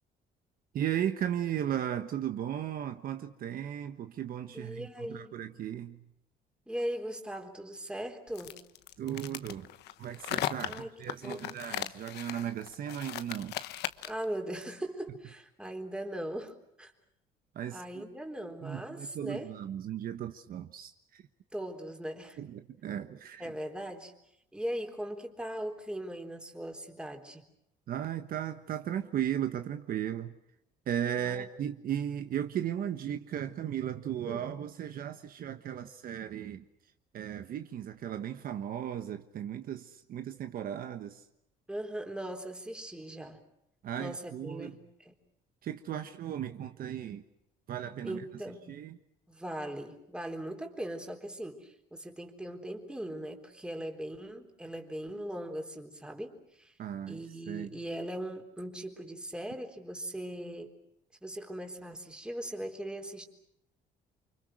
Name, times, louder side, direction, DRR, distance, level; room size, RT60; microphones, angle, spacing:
voice 1, 0.7-6.1 9.0-9.7 10.0-13.6 17.5-18.1 18.6-21.2 22.4-23.5 27.9-30.3 30.9-36.6 37.1-41.2 43.8-44.8 45.6-47.2 47.7-48.2 48.7-49.0 56.8-57.7, right 10 dB, 60° right, 1.4 m, -36 dB
voice 2, 4.5-5.4 6.7-8.6 10.6-10.9 11.2-11.5 14.0-16.9 17.7-19.5 21.5-22.4 23.4-24.1 24.5-27.4 31.2-31.5 34.2-34.5 41.7-43.4 44.0-45.1 48.0-48.6 49.3-56.7 57.1-60.7 61.2-63.3, right 1 dB, 5° right, 3.9 m, -39 dB
sound 1, 8.3-14.2, left 13 dB, 80° left, 1.1 m, -38 dB
29.5 x 25.0 x 6.2 m
cardioid pair, 110°, 17 cm